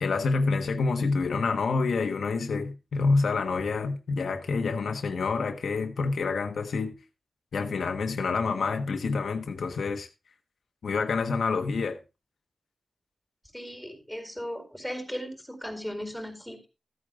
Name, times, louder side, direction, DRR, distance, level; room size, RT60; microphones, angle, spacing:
voice 1, 0.0-7.0 7.5-10.1 10.8-12.0, left 4 dB, 85° left, 1.3 m, -27 dB
voice 2, 13.5-16.7, equal, 5° right, 4.5 m, -37 dB
14.0 x 8.8 x 3.7 m
wide cardioid pair, 85°, 0 cm